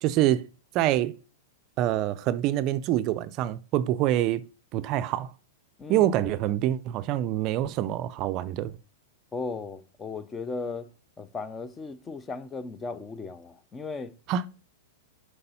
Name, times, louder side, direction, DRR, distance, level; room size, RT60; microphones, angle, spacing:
voice 1, 0.0-0.5 0.7-1.1 1.8-4.4 4.7-5.3 5.9-8.7 14.3-14.5, right 13 dB, 40° right, 0.4 m, -25 dB
voice 2, 9.3-10.9 11.2-14.1, left 4 dB, 15° left, 0.6 m, -36 dB
6.7 x 4.7 x 5.6 m
hypercardioid pair, 140°, 0 cm